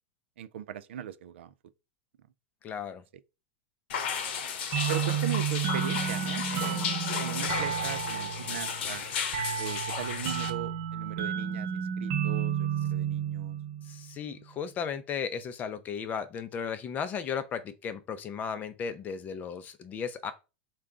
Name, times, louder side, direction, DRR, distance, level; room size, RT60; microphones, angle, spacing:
voice 1, 0.4-1.5 4.9-9.0 9.6-13.6, right 10 dB, 80° right, 0.4 m, -39 dB
voice 2, 2.6-3.0 13.9-20.3, left 7 dB, 25° left, 0.5 m, -35 dB
sound 1, 3.9-10.5, left 7 dB, 70° left, 0.8 m, -34 dB
sound 2, 4.7-14.1, right 8 dB, 50° right, 0.8 m, -32 dB
3.7 x 2.3 x 3.6 m
supercardioid pair, 130°, 6 cm